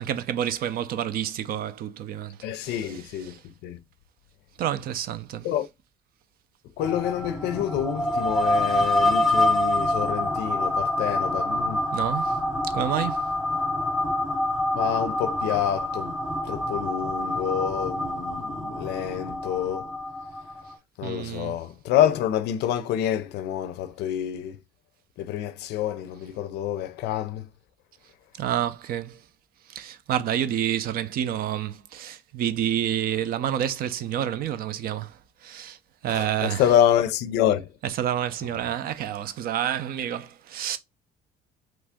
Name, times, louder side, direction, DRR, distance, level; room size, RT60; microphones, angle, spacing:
voice 1, 0.0-3.4 4.6-5.5 11.9-12.4 12.7-13.3 21.0-21.6 28.4-29.2 29.7-35.8 36.0-36.6 37.8-40.8, right 10 dB, 60° right, 0.5 m, -29 dB
voice 2, 2.4-3.3 3.6-3.8 5.4-5.7 6.8-11.8 14.7-16.2 16.5-19.9 21.0-24.6 25.2-27.5 36.1-37.7, left 10 dB, 80° left, 0.4 m, -27 dB
sound 1, 6.8-20.7, left 1 dB, ahead, 0.5 m, -26 dB
3.0 x 2.5 x 3.4 m
cardioid pair, 110°, 17 cm